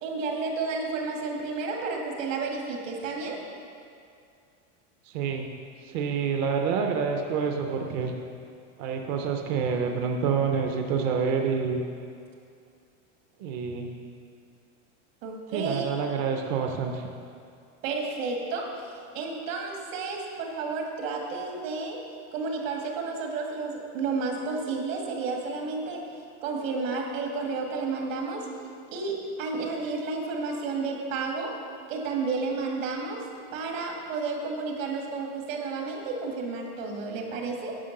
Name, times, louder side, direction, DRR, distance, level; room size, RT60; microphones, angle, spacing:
voice 1, 0.0-3.4 15.2-15.9 17.8-22.0 22.3-26.0 26.4-28.4 28.9-31.5 31.9-33.2 33.5-37.8, right 4 dB, 75° right, 1 dB, 2.1 m, -31 dB
voice 2, 5.1-5.5 5.8-8.2 8.8-11.8 13.4-13.9 15.5-17.1, right 6 dB, 30° right, 3 dB, 0.5 m, -27 dB
9.8 x 5.9 x 6.4 m, 2.4 s
supercardioid pair, 170°, 39 cm